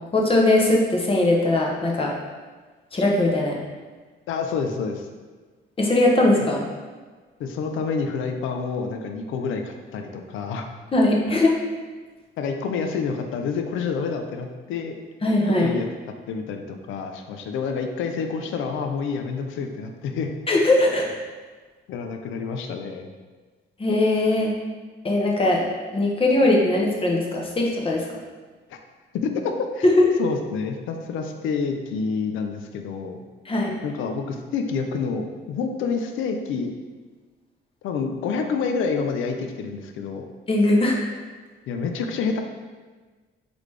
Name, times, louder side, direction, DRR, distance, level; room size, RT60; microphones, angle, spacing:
voice 1, 0.1-2.1 2.9-3.6 5.8-6.6 10.9-11.6 15.2-15.7 20.5-21.2 23.8-24.5 25.0-25.6 25.9-28.1 29.8-30.1 33.5-33.7 40.5-41.0, left 2 dB, 25° left, -1 dB, 0.8 m, -20 dB
voice 2, 4.3-5.1 7.4-10.7 12.4-15.0 15.6-15.9 16.3-20.3 21.9-23.1 28.7-28.8 29.1-29.9 30.2-33.2 33.8-36.7 37.8-40.3 41.7-42.4, left 5 dB, 80° left, 5 dB, 0.5 m, -28 dB
3.9 x 3.3 x 3.2 m, 1.4 s
cardioid pair, 90°, 20 cm